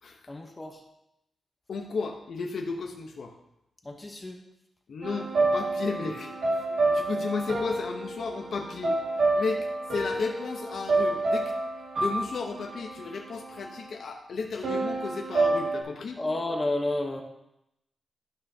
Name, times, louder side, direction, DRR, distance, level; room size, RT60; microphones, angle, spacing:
voice 1, 0.3-0.8 3.8-4.4 16.2-17.2, left 2 dB, 20° left, 2 dB, 0.9 m, -31 dB
voice 2, 1.7-3.3 4.9-11.5 12.0-16.2, left 4 dB, 65° left, 2 dB, 0.8 m, -34 dB
sound 1, 5.0-13.9 14.6-15.8, right 2 dB, 75° right, 2.0 m, -28 dB
12.0 x 5.7 x 2.8 m, 0.83 s
wide cardioid pair, 115°, 0 cm